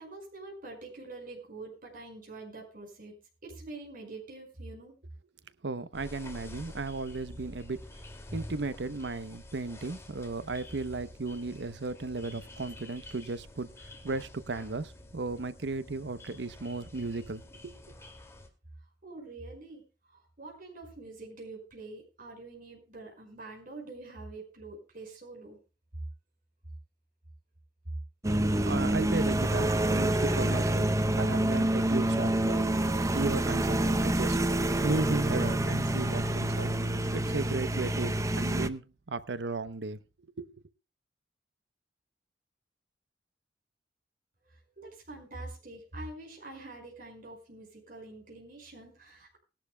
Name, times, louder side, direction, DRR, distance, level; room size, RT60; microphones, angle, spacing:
voice 1, 0.0-5.0 19.0-19.8 20.1-25.6 44.5-49.4, right 2 dB, 50° right, 5.1 m, -45 dB
voice 2, 5.6-7.8 8.3-17.7 28.2-32.8 33.1-36.7 37.1-40.0 40.4-40.5, right 3 dB, 70° right, 0.8 m, -35 dB
sound 1, 5.9-18.5, left 1 dB, 15° left, 2.3 m, -48 dB
sound 2, 28.2-38.7, right 1 dB, 20° right, 0.7 m, -27 dB
20.0 x 11.5 x 2.2 m
head